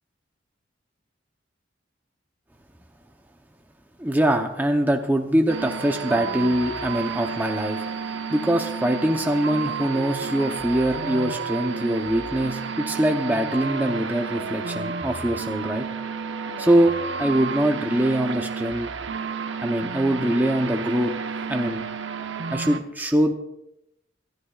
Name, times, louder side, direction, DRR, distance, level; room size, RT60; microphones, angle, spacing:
voice 1, 4.0-7.8 8.3-15.9 16.6-16.9 17.2-18.9 19.6-21.1 21.5-21.8 22.5-23.3, right 1 dB, 10° right, 3 dB, 0.8 m, -23 dB
sound 1, 5.5-22.8, right 5 dB, 75° right, 1.0 m, -31 dB
28.0 x 13.0 x 2.4 m, 0.86 s
head